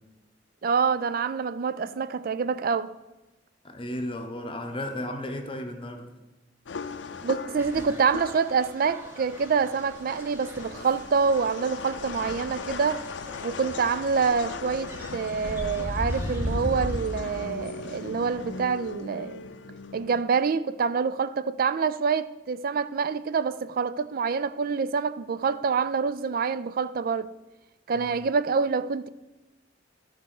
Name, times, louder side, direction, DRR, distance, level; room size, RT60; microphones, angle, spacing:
voice 1, 0.6-2.9 7.2-13.0 13.4-19.4 19.9-27.3 27.9-29.1, right 5 dB, 50° right, 0.4 m, -26 dB
voice 2, 3.6-6.1 27.9-28.1, left 1 dB, 30° left, 0.8 m, -34 dB
sound 1, 6.7-20.2, left 5 dB, 75° left, 0.5 m, -39 dB
sound 2, 7.6-17.1, equal, 15° right, 1.1 m, -37 dB
11.5 x 4.1 x 6.5 m
head